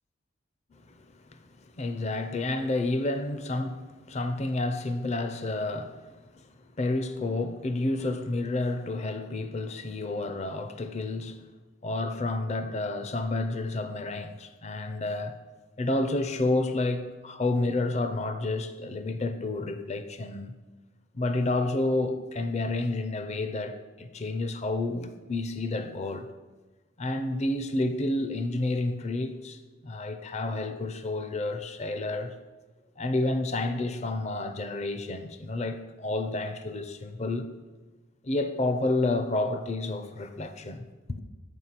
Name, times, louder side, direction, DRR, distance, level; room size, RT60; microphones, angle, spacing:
voice 1, 1.7-6.0 6.3-6.4 6.8-11.4 11.8-15.4 15.8-20.5 21.1-26.3 27.0-32.3 33.0-37.5 38.2-41.2, left 2 dB, 35° left, 0.5 m, -30 dB
8.1 x 4.8 x 5.8 m
head